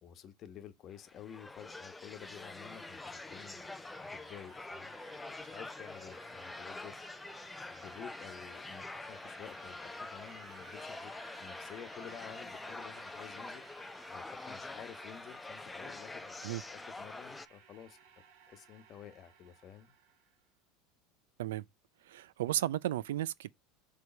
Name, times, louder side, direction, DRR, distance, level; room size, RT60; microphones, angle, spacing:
voice 1, 0.0-3.7 4.1-5.0 5.3-6.9 7.7-11.1 11.4-13.7 14.1-18.0 18.4-19.9, left 9 dB, 40° left, 1.2 m, -51 dB
sound 1, 1.0-17.5, left 2 dB, 10° left, 0.5 m, -46 dB
sound 2, 1.9-20.4, right 8 dB, 65° right, 1.5 m, -60 dB
voice 2, 22.1-23.5, right 13 dB, 85° right, 0.4 m, -34 dB
6.3 x 3.4 x 5.8 m
supercardioid pair, 115°, 0 cm